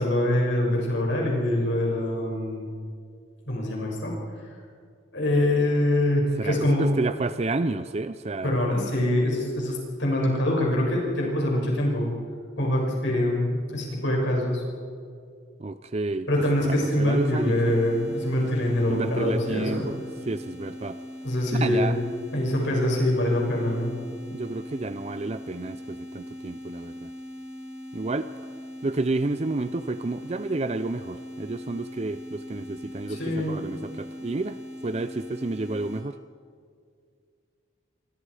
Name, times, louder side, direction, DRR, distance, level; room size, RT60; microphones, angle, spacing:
voice 1, 0.0-2.7 3.5-4.1 4.5-4.6 5.1-6.9 8.4-12.1 12.6-14.6 16.3-19.9 21.2-21.9 22.3-23.9 33.1-33.6, left 1 dB, 65° left, -2 dB, 6.7 m, -24 dB
voice 2, 6.4-8.6 15.6-16.3 17.0-17.7 18.9-20.0 20.3-21.0 21.5-22.0 24.3-27.1 27.9-28.3 28.8-34.6 34.8-36.2, right 2 dB, 30° right, 12 dB, 0.5 m, -30 dB
sound 1, 16.3-36.1, equal, 5° right, 2.2 m, -40 dB
28.5 x 23.5 x 4.9 m, 2.2 s
head